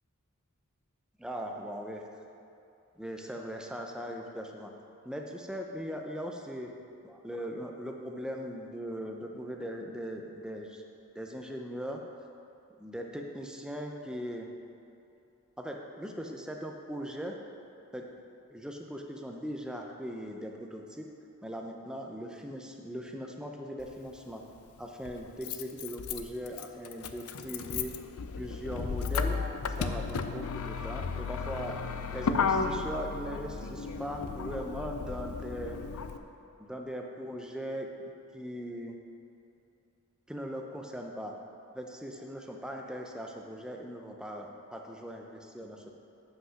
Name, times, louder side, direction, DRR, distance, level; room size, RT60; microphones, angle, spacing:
voice 1, 1.2-2.0 3.0-4.7 5.0-6.7 7.0-10.8 11.1-12.0 12.8-14.5 15.6-17.3 17.9-18.1 18.5-21.1 21.4-24.4 24.8-27.9 28.3-29.4 29.7-31.8 32.1-35.8 36.6-38.9 40.3-41.3 41.7-45.9, equal, 5° right, 1 dB, 0.6 m, -39 dB
Motor vehicle (road), 23.8-23.9 25.0-36.2, left 5 dB, 80° left, 0.5 m, -34 dB
7.9 x 5.5 x 5.7 m, 2.8 s
head